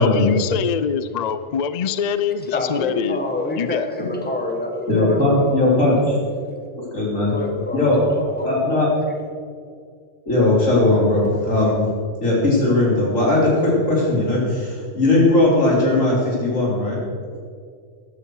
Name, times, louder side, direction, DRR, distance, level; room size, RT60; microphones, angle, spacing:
voice 1, 0.0-3.9, left 7 dB, 55° left, 13 dB, 0.4 m, -24 dB
voice 2, 2.5-5.8 6.5-6.6 7.3-8.9, left 1 dB, 10° left, 1 dB, 1.6 m, -28 dB
voice 3, 4.9-6.1 6.9-7.3 7.7-8.0 8.4-8.9 10.3-11.8 12.2-17.0, left 2 dB, 85° left, -5 dB, 4.1 m, -18 dB
14.0 x 12.0 x 4.8 m, 2.2 s
omnidirectional pair, 1.3 m